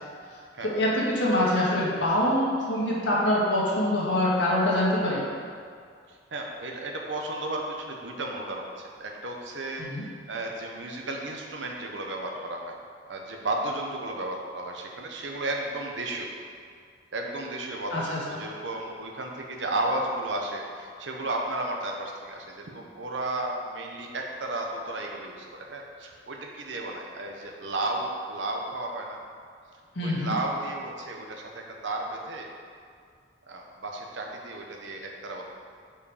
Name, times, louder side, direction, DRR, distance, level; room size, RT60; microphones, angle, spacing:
voice 1, 0.6-5.3 9.8-10.0 17.9-18.4 29.9-30.3, left 1 dB, 90° left, -6 dB, 1.7 m, -25 dB
voice 2, 6.3-12.8 13.1-16.3 17.1-29.2 30.0-32.5 33.5-35.5, right 2 dB, 80° right, 1 dB, 0.9 m, -33 dB
5.5 x 4.8 x 4.9 m, 2.2 s
head